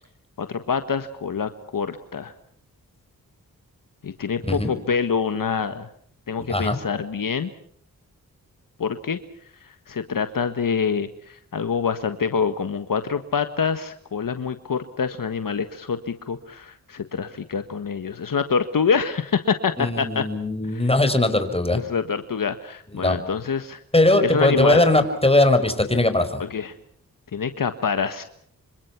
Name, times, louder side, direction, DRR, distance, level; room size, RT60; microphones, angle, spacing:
voice 1, 0.4-2.3 4.0-5.9 6.3-7.5 8.8-9.2 9.6-20.2 20.7-20.9 21.7-23.8 24.2-24.8 26.4-26.7 27.3-28.2, left 6 dB, 65° left, 10 dB, 1.5 m, -26 dB
voice 2, 19.8-21.8 22.9-23.2 23.9-26.4, left 2 dB, 15° left, 8 dB, 5.1 m, -20 dB
26.5 x 25.5 x 5.9 m, 0.63 s
cardioid pair, 50°, 35 cm